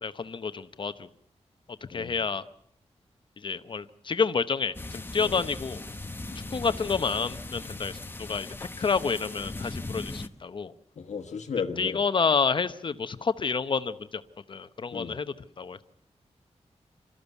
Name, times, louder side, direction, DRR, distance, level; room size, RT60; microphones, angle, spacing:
voice 1, 0.0-1.1 1.9-2.4 3.4-5.8 6.5-7.9 8.2-10.7 11.8-14.2 14.5-15.8, left 5 dB, 45° left, 12 dB, 0.9 m, -29 dB
sound 1, 4.7-10.3, left 2 dB, 20° left, 0.9 m, -38 dB
voice 2, 11.0-12.0 14.9-15.2, left 6 dB, 85° left, 4 dB, 1.5 m, -34 dB
27.0 x 14.0 x 8.2 m, 0.71 s
wide cardioid pair, 180°, 12 cm